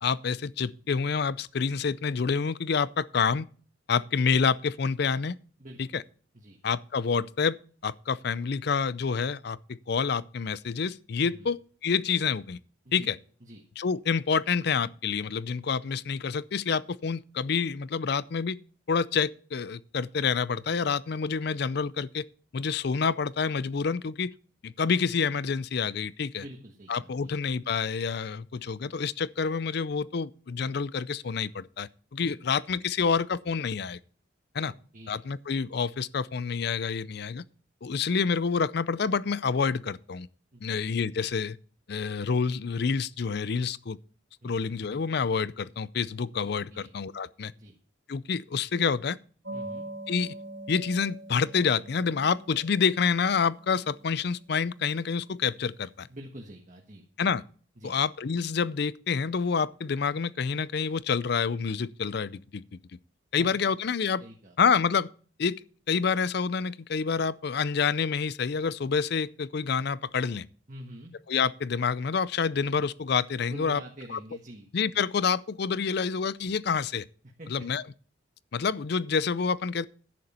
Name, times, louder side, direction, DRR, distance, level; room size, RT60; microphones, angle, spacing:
voice 1, 0.0-3.5 3.9-5.4 5.9-6.0 6.6-7.6 7.8-12.6 12.9-13.2 13.8-18.6 18.9-22.3 22.5-24.3 24.6-26.4 26.9-34.0 34.5-34.7 35.1-37.4 37.8-40.3 40.6-41.6 41.9-44.0 44.4-47.5 48.1-49.2 50.1-50.4 50.7-56.1 57.2-57.4 57.8-62.6 63.3-64.2 64.6-65.1 65.4-70.5 71.3-73.8 74.1-74.2 74.7-77.1 77.5-77.8 78.5-79.9, left 5 dB, 55° left, 0.4 m, -28 dB
voice 2, 5.6-6.0 6.3-6.6 11.2-11.5 12.8-13.1 13.4-13.6 26.3-27.3 32.2-32.5 34.9-35.2 40.5-40.8 44.4-44.7 46.7-46.9 47.6-47.7 49.5-49.8 56.1-57.0 57.8-58.0 63.3-63.7 64.2-64.5 70.7-71.1 73.4-75.0 77.4-77.7, right 1 dB, 40° right, 1.4 m, -46 dB
sound 1, 49.4-55.6, right 2 dB, 70° right, 2.9 m, -44 dB
11.0 x 9.4 x 4.3 m
head